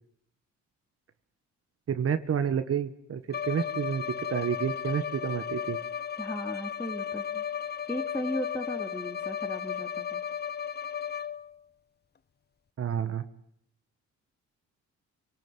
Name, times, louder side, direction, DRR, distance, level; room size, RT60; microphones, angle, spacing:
voice 1, 1.9-4.0 4.3-5.8 12.8-13.2, right 8 dB, 50° right, 10 dB, 1.7 m, -29 dB
Bowed string instrument, 3.3-11.6, left 8 dB, 35° left, 1.1 m, -35 dB
voice 2, 6.2-7.4 7.9-10.2, left 1 dB, 10° left, 4 dB, 3.3 m, -36 dB
26.5 x 18.5 x 9.5 m, 0.72 s
cardioid pair, 90°, 30 cm